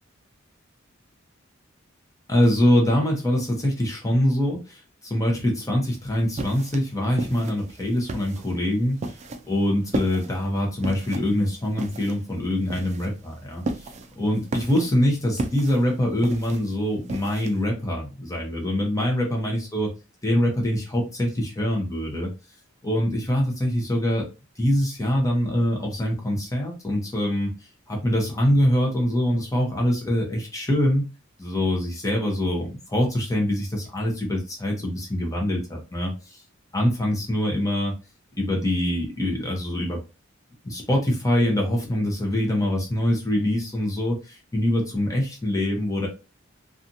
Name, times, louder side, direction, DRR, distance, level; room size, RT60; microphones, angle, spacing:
voice 1, 2.3-9.2 9.4-13.6 14.2-19.9 20.2-22.3 22.8-24.3 24.6-27.5 27.9-31.0 31.4-36.4 36.7-37.9 38.4-40.0 40.6-46.1, equal, 15° left, -1 dB, 0.8 m, -24 dB
sound 1, 5.9-17.6, right 2 dB, 35° right, 0.4 m, -34 dB
2.7 x 2.4 x 2.6 m, 0.29 s
head